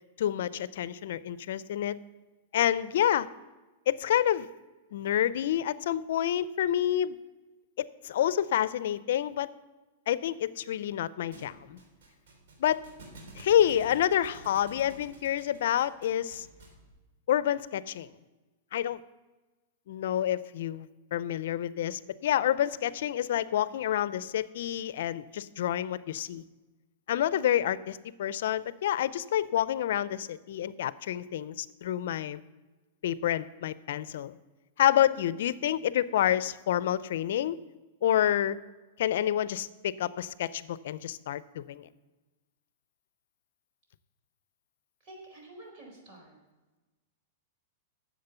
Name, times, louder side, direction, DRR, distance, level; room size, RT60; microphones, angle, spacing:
voice 1, 0.2-2.0 2.5-3.3 3.9-4.5 4.9-7.2 7.8-9.5 10.1-11.8 12.6-12.8 13.3-16.5 17.3-18.1 18.7-19.0 19.9-26.4 27.1-32.4 33.0-34.4 34.8-37.6 38.0-38.6 39.0-41.9, left 11 dB, 70° left, 17 dB, 0.5 m, -28 dB
Thump thud, 11.3-16.9, right 2 dB, 70° right, 3.5 m, -51 dB
voice 2, 45.0-46.3, right 1 dB, 40° right, 0 dB, 4.3 m, -49 dB
10.5 x 7.5 x 6.8 m, 1.2 s
supercardioid pair, 150°, 0 cm